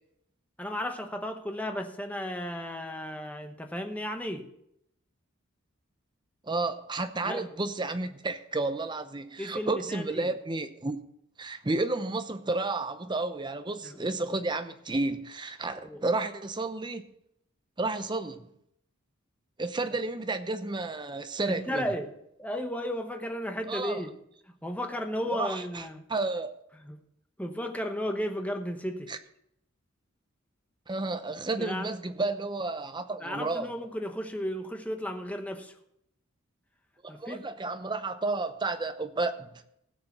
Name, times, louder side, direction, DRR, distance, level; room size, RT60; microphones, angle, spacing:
voice 1, 0.6-4.5 7.2-7.5 9.4-10.3 13.8-14.0 15.8-16.0 21.5-22.1 22.4-24.1 24.6-26.0 26.8-27.0 27.4-29.1 31.6-31.9 33.2-35.7 37.1-37.4, equal, 5° left, 1.0 m, -34 dB
voice 2, 6.4-11.0 11.4-17.0 17.8-18.5 19.6-21.9 23.7-24.0 25.3-26.5 29.1-29.2 30.9-33.7 37.0-39.6, right 2 dB, 20° right, 0.7 m, -32 dB
17.0 x 6.8 x 4.3 m
head